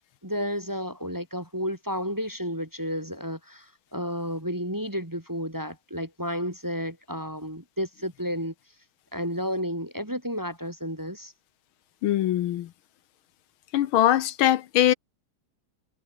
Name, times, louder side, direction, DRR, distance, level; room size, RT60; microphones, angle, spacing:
voice 1, 0.2-8.5 9.1-11.3, equal, 10° right, 2.0 m, -32 dB
voice 2, 12.0-12.7 13.7-14.9, left 12 dB, 80° left, 1.7 m, -22 dB
omnidirectional pair, 2.3 m